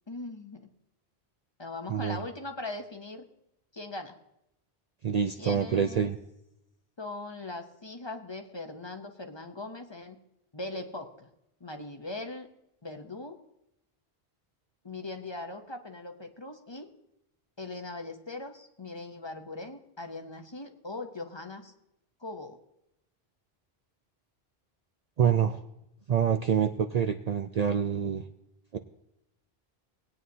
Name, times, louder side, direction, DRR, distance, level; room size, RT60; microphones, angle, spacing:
voice 1, 0.1-0.7 1.6-3.2 3.7-4.2 5.4-6.1 7.0-10.2 10.5-11.3 11.6-12.5 12.8-13.4 14.8-16.9 17.6-21.7 22.2-22.6, left 2 dB, 30° left, 5 dB, 0.8 m, -40 dB
voice 2, 5.0-6.2 25.2-25.6 26.1-28.2 28.7-28.8, right 7 dB, 55° right, 7 dB, 0.5 m, -26 dB
19.0 x 9.3 x 2.7 m, 0.84 s
omnidirectional pair, 1.0 m